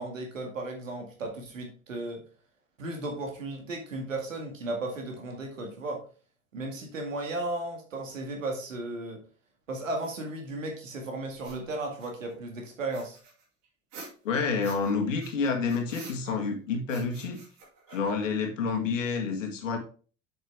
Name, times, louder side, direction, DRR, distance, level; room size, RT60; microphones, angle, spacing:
voice 1, 0.0-2.2 2.8-6.1 6.5-9.2 9.7-13.2, right 2 dB, 85° right, 2 dB, 2.3 m, -35 dB
sound 1, 10.0-10.1 11.3-12.3 12.9-14.9 15.2-16.5 16.9-18.4, right 4 dB, 50° right, 4.2 m, -49 dB
voice 2, 14.2-17.4 17.9-19.8, left 5 dB, 75° left, 4 dB, 1.9 m, -29 dB
7.7 x 6.6 x 3.5 m, 0.38 s
figure-of-eight pair, 65°, 38 cm